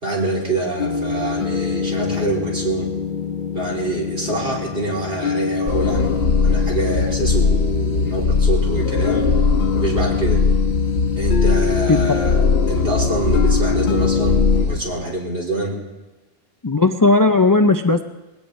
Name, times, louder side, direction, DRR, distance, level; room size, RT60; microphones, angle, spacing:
voice 1, 0.0-2.9 3.6-6.1 6.4-9.3 9.7-10.4 11.2-12.4 12.7-15.8, right 2 dB, 65° right, -3 dB, 3.7 m, -25 dB
sound 1, 0.8-14.7, left 5 dB, 50° left, 0.8 m, -25 dB
sound 2, 5.7-14.8, left 4 dB, 85° left, 1.3 m, -19 dB
voice 2, 16.6-18.0, left 3 dB, 30° left, 6 dB, 0.4 m, -15 dB
21.0 x 17.0 x 3.2 m, 1.1 s
omnidirectional pair, 1.1 m